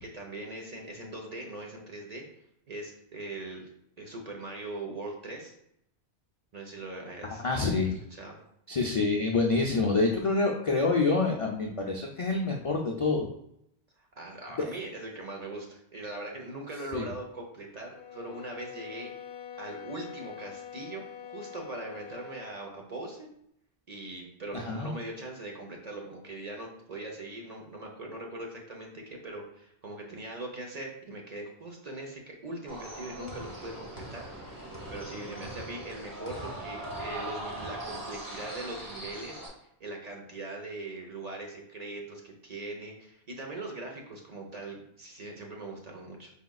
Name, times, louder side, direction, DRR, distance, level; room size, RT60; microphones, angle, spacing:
voice 1, 0.0-2.3 2.7-3.7 4.0-5.5 6.5-7.4 8.1-8.4 14.0-19.1 19.6-23.3 23.9-39.4 39.8-46.3, right 2 dB, 40° right, 0 dB, 0.7 m, -41 dB
voice 2, 7.4-8.0 8.7-13.3 16.9-17.1 24.5-24.9, left 3 dB, 50° left, 0 dB, 0.4 m, -27 dB
sound 1, 17.9-22.6, left 9 dB, 70° left, 0.8 m, -45 dB
sound 2, 32.7-39.5, right 1 dB, 20° right, 1.0 m, -40 dB
4.9 x 3.6 x 2.3 m, 0.76 s
omnidirectional pair, 1.1 m